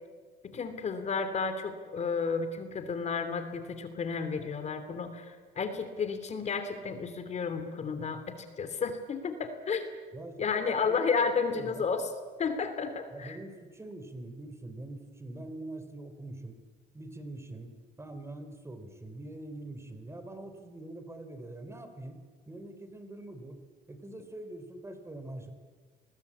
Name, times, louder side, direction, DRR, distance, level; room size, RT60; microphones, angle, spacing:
voice 1, 0.4-9.9 10.4-12.0 12.4-13.4, left 5 dB, 40° left, 9 dB, 3.0 m, -32 dB
voice 2, 10.1-11.1 11.5-11.8 13.1-16.6 16.9-23.6 23.9-25.5, right 2 dB, 15° right, 8 dB, 3.3 m, -44 dB
27.5 x 21.0 x 8.6 m, 1.5 s
cardioid pair, 110°, 17 cm